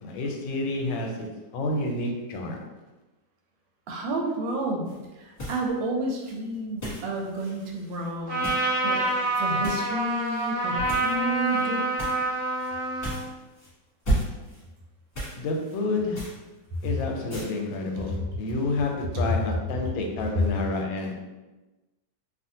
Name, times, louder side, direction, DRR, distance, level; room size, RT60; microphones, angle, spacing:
voice 1, 0.0-2.6 15.4-16.2 16.8-21.1, left 2 dB, 90° left, 2 dB, 1.3 m, -29 dB
voice 2, 3.9-4.9 5.2-8.5 8.8-9.0 9.3-11.9, right 2 dB, 85° right, 1 dB, 1.3 m, -30 dB
sound 1, 4.9-5.1 5.3-5.8 6.1-8.7 9.0-9.2 9.6-9.9 10.2-10.5 10.9-11.6 12.0-12.3 12.6-12.7 13.0-13.7 14.0-14.6 15.1-15.8 16.1-16.9 17.3-17.5, right 1 dB, 35° left, 1.3 m, -34 dB
Trumpet, 8.3-13.2, right 2 dB, 65° right, 1.2 m, -27 dB
2.9 x 2.5 x 2.7 m, 1.1 s
omnidirectional pair, 2.0 m